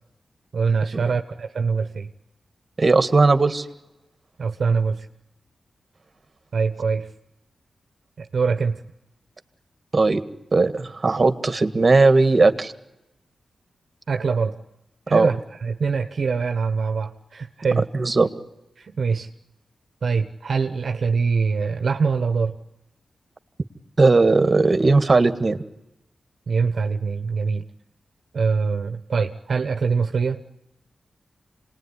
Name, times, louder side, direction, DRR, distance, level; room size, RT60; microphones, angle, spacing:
voice 1, 0.5-2.1 4.4-5.1 6.5-7.1 8.2-8.8 14.1-14.6 15.1-17.9 18.8-19.3 20.0-22.6 26.5-27.6 28.3-30.4, right 5 dB, 70° right, 6 dB, 1.1 m, -23 dB
voice 2, 2.8-3.7 9.9-10.2 10.5-12.7 15.1-15.3 17.8-18.3 24.0-25.6, right 3 dB, 45° right, 9 dB, 1.8 m, -18 dB
26.5 x 20.0 x 9.8 m, 0.93 s
cardioid pair, 55°, 0 cm